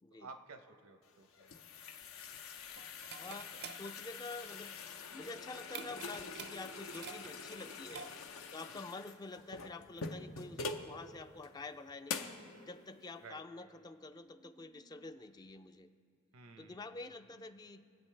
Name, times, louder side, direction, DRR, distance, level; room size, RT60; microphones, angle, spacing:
voice 1, 0.2-1.6 8.7-8.8 13.2-13.7 16.3-17.0, right 4 dB, 85° right, 7 dB, 0.8 m, -54 dB
sound 1, 1.1-10.9 11.4-11.5 12.1-12.4, left 4 dB, 80° left, 0.7 m, -45 dB
sound 2, 2.0-8.5, right 6 dB, 50° right, 0.5 m, -51 dB
voice 2, 3.2-8.1 8.5-12.2 12.7-15.9 16.6-17.8, left 3 dB, 20° left, 9 dB, 0.3 m, -48 dB
sound 3, 5.1-15.1, left 2 dB, 55° left, 1.0 m, -65 dB
24.0 x 8.2 x 3.3 m, 2.3 s
head